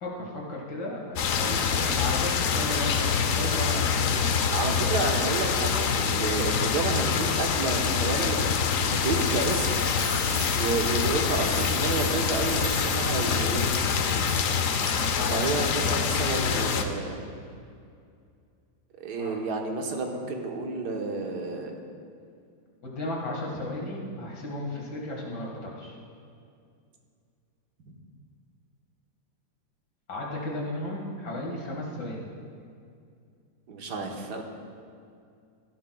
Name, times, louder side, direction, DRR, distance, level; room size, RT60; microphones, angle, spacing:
voice 1, 0.0-4.3 4.8-4.9 15.1-15.7 19.1-19.4 22.8-26.0 30.1-32.2, left 1 dB, 80° left, -2 dB, 2.5 m, -34 dB
sound 1, 1.2-16.8, left 6 dB, 65° left, 0.9 m, -26 dB
voice 2, 4.5-9.8 10.5-13.8 15.3-17.2 19.0-21.8 33.7-34.4, right 3 dB, 75° right, 2 dB, 1.7 m, -30 dB
sound 2, 8.9-16.3 16.6-16.9, left 1 dB, 20° left, 1.5 m, -40 dB
16.5 x 12.0 x 2.3 m, 2.3 s
omnidirectional pair, 1.8 m